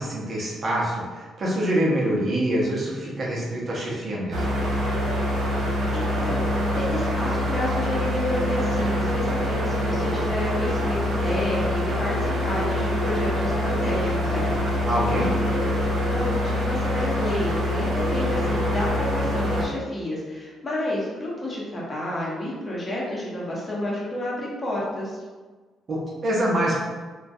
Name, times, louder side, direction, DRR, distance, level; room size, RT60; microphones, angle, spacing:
voice 1, 0.0-4.5 14.9-15.3 25.9-26.8, right 1 dB, 45° right, -5 dB, 0.7 m, -25 dB
sound 1, 4.3-19.7, left 1 dB, 80° right, 0.6 m, -25 dB
voice 2, 5.9-15.7 16.1-25.2, left 1 dB, 30° left, -5 dB, 0.8 m, -30 dB
2.2 x 2.1 x 2.6 m, 1.4 s
cardioid pair, 90°, 0 cm